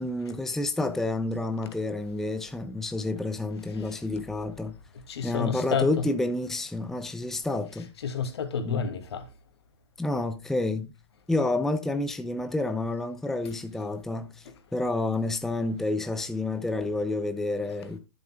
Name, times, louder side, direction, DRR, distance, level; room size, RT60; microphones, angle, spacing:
voice 1, 0.0-4.8 5.2-7.9 8.6-8.9 10.0-10.9 11.3-18.0, left 2 dB, ahead, 0.6 m, -29 dB
voice 2, 5.1-6.0 8.0-9.2, left 7 dB, 65° left, 2.5 m, -30 dB
12.0 x 7.7 x 2.3 m
hypercardioid pair, 135°, 15 cm